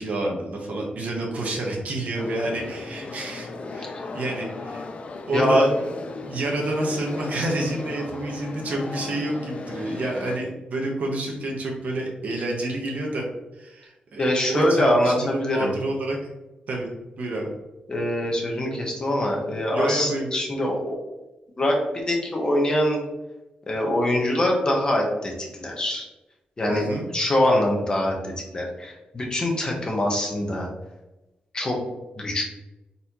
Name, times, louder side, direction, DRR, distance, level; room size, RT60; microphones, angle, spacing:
voice 1, 0.0-4.9 5.3-5.7 6.2-13.3 13.5-16.2 16.7-16.9 17.2-17.5 19.7-20.4 26.7-27.0, right 1 dB, 60° right, -1 dB, 1.1 m, -29 dB
sound 1, 2.2-10.4, left 3 dB, 45° left, 0.5 m, -36 dB
voice 2, 5.3-5.6 14.2-15.7 17.9-21.0 21.6-23.0 23.7-26.1 26.6-26.9 27.1-30.7 31.5-31.8 32.2-32.4, left 1 dB, 30° left, -1 dB, 1.0 m, -23 dB
4.1 x 4.0 x 2.9 m, 1.0 s
wide cardioid pair, 135°, 3 cm